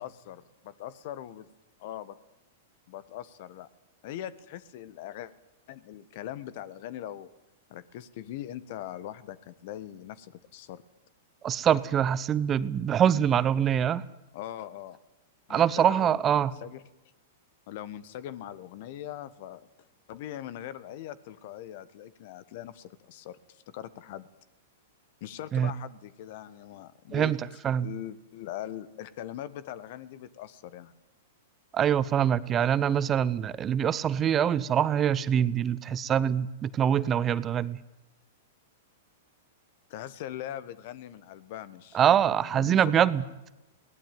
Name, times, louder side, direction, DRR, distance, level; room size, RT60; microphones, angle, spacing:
voice 1, 0.0-1.5 1.8-2.2 2.9-3.7 4.0-5.3 5.7-7.3 7.7-10.8 14.3-15.0 15.5-16.8 17.7-19.7 20.1-24.3 25.2-27.3 27.7-30.9 37.2-37.4 39.9-42.9, left 12 dB, 55° left, 17 dB, 1.3 m, -41 dB
voice 2, 11.4-14.0 15.5-16.5 25.5-25.7 27.1-27.9 31.7-37.8 41.9-43.2, right 9 dB, 25° right, 18 dB, 0.8 m, -24 dB
22.0 x 17.5 x 9.3 m, 0.99 s
hypercardioid pair, 110°, 0 cm